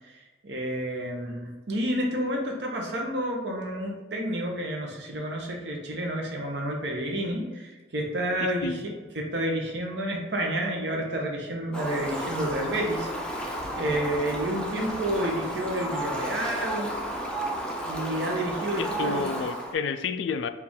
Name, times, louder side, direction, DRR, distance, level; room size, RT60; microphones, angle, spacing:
voice 1, 0.1-13.5 13.8-16.9 17.8-19.2, right 1 dB, 70° right, 0 dB, 0.9 m, -30 dB
voice 2, 8.4-8.8 18.8-20.5, left 5 dB, 85° left, 11 dB, 0.3 m, -30 dB
Fowl, 11.7-19.7, right 1 dB, 5° left, 0.4 m, -32 dB
4.4 x 2.5 x 3.5 m, 1.2 s
head